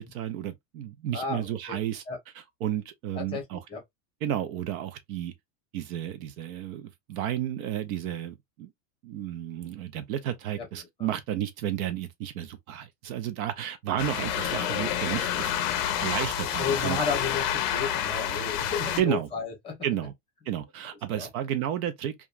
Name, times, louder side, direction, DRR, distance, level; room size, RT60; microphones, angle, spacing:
voice 1, 0.0-2.0 2.3-3.6 4.2-5.3 5.7-8.7 9.0-15.5 16.0-17.0 19.0-19.3 19.8-20.1 20.5-22.1, right 11 dB, 65° right, 0.6 m, -32 dB
voice 2, 1.1-1.7 2.1-2.2 3.2-3.4 3.7-3.8 10.6-10.7 11.0-11.2 16.6-19.8 21.2-21.3, left 5 dB, 10° left, 0.9 m, -32 dB
sound 1, 14.0-19.0, left 9 dB, 45° left, 0.5 m, -29 dB
2.9 x 2.3 x 2.3 m
supercardioid pair, 160°, 47 cm